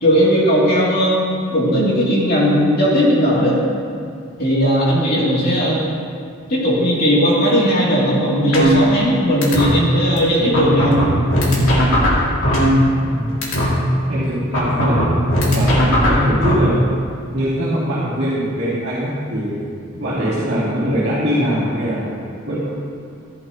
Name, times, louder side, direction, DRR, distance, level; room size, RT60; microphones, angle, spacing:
voice 1, 0.0-1.2 1.5-3.6 4.4-5.8 6.5-11.0, equal, 45° left, -6 dB, 2.9 m, -16 dB
sound 1, 8.5-9.1 9.4-9.7 10.2-10.3 10.5-13.1 13.4-13.7 14.5-16.5, equal, 75° left, 2.7 m, -16 dB
voice 2, 13.0-13.5 14.1-15.0 15.5-16.8 17.3-19.6 20.0-22.1 22.5-22.6, equal, 55° right, -12 dB, 2.6 m, -21 dB
14.5 x 10.5 x 3.0 m, 2.3 s
head